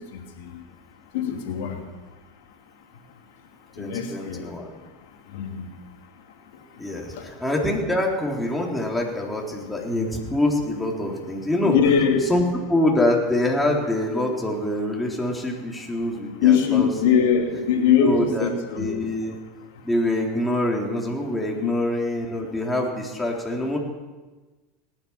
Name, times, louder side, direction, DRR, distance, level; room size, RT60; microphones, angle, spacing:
voice 1, 1.1-1.8 3.8-4.4 5.3-5.6 11.6-12.2 16.4-18.9 21.6-21.7, left 7 dB, 65° left, 3 dB, 2.7 m, -21 dB
voice 2, 3.8-4.7 6.8-11.8 12.3-16.9 18.0-18.5 18.8-19.4 19.8-23.8, left 1 dB, 5° left, -2 dB, 3.8 m, -25 dB
18.5 x 11.0 x 6.0 m, 1.2 s
hypercardioid pair, 85°, 0 cm